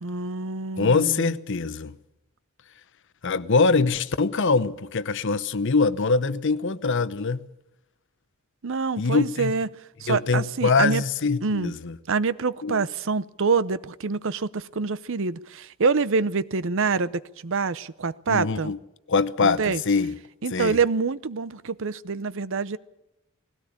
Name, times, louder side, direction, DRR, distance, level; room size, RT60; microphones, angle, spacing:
voice 1, 0.0-1.2 8.6-9.7 10.0-11.0 11.4-11.7 12.1-18.7 19.4-19.8 20.4-22.8, right 4 dB, 65° right, 0.7 m, -26 dB
voice 2, 0.8-1.9 3.2-7.4 9.0-9.5 10.1-12.0 12.6-12.8 18.3-18.8 19.1-20.2 20.5-20.8, left 4 dB, 60° left, 0.9 m, -23 dB
19.5 x 17.0 x 8.7 m
head